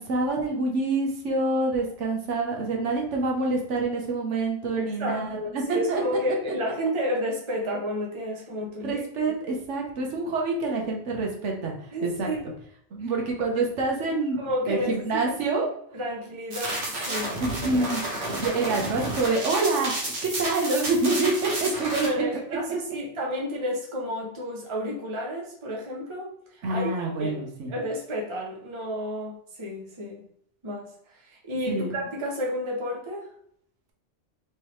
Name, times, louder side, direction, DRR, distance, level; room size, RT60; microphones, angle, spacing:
voice 1, 0.0-6.0 8.8-12.3 12.9-15.7 17.4-18.0 18.3-19.9 20.2-22.2 26.6-27.7 31.7-32.0, right 3 dB, 75° right, 0 dB, 1.2 m, -27 dB
voice 2, 4.8-9.0 11.9-12.4 14.4-15.3 15.9-17.3 21.8-26.9 27.2-27.4 27.7-30.2 30.6-33.3, equal, 30° right, -1 dB, 0.8 m, -31 dB
sound 1, 16.5-22.1, right 1 dB, 50° right, 1.2 m, -31 dB
3.5 x 3.2 x 3.0 m, 0.66 s
omnidirectional pair, 1.2 m